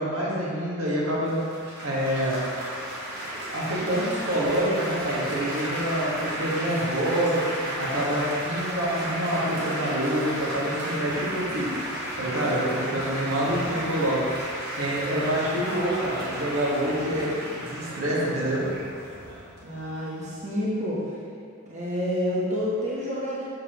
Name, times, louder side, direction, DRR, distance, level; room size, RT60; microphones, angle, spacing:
voice 1, 0.0-1.4 1.8-2.4 3.3-7.4 7.8-11.7 12.2-14.2 14.8-18.6, right 1 dB, 75° right, -6 dB, 1.7 m, -26 dB
Laughter / Applause / Chatter, 1.2-20.4, right 1 dB, 50° right, 1.6 m, -34 dB
voice 2, 19.6-21.2 21.7-23.5, equal, 35° right, -7 dB, 1.2 m, -28 dB
7.2 x 6.7 x 3.0 m, 2.4 s
head